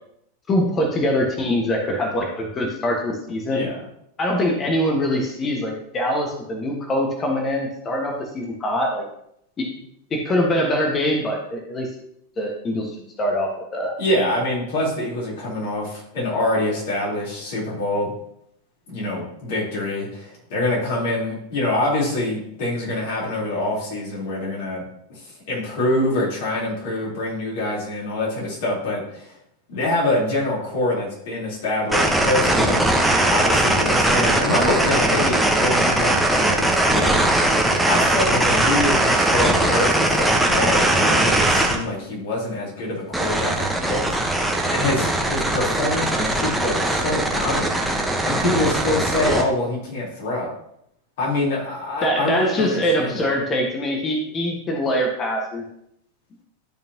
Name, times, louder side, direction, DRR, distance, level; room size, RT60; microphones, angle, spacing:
voice 1, 0.5-3.7 4.2-9.0 9.6-9.7 10.1-11.9 12.4-13.9 52.0-55.6, equal, 25° left, 1 dB, 1.4 m, -23 dB
voice 2, 14.0-18.1 18.9-24.8 25.1-29.4 29.7-32.8 33.3-37.5 37.9-44.2 44.7-50.5 51.2-53.2, left 1 dB, 55° left, -5 dB, 3.5 m, -25 dB
sound 1, 31.9-41.8 43.1-49.4, right 1 dB, 5° right, 1.1 m, -20 dB
12.0 x 5.3 x 2.9 m, 0.74 s
figure-of-eight pair, 90°, 0 cm